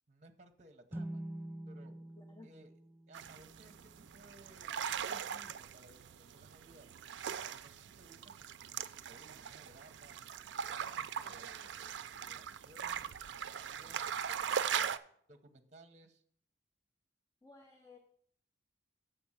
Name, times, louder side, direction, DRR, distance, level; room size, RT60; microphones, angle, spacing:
voice 1, 0.1-1.2 1.7-2.0 2.4-2.7 3.1-6.9 7.3-10.2 10.7-14.2 15.3-16.2, right 1 dB, 40° right, 7 dB, 0.9 m, -60 dB
sound 1, 0.9-4.5, right 1 dB, 10° right, 0.4 m, -47 dB
voice 2, 2.2-2.5 14.4-15.0 17.4-18.0, left 3 dB, 20° left, 2 dB, 0.8 m, -58 dB
sound 2, 3.1-15.0, right 8 dB, 75° right, 0.4 m, -40 dB
6.9 x 5.2 x 7.2 m, 0.63 s
head